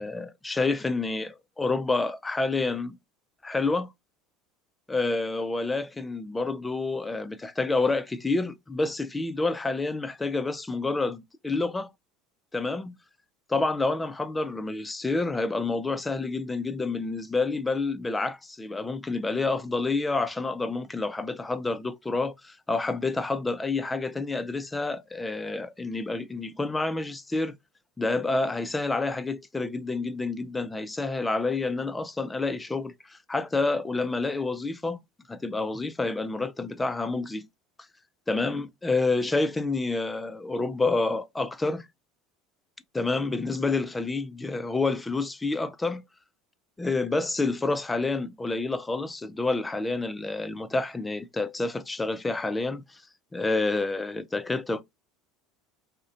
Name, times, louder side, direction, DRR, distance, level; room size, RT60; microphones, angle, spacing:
voice 1, 0.0-3.0 3.4-3.9 4.9-11.9 12.5-13.0 13.5-27.6 28.0-35.0 35.3-37.5 38.3-41.9 42.9-46.0 46.8-53.0 53.3-54.8, left 3 dB, 15° left, 0.4 m, -28 dB
2.4 x 2.1 x 2.5 m
hypercardioid pair, 85°, 0 cm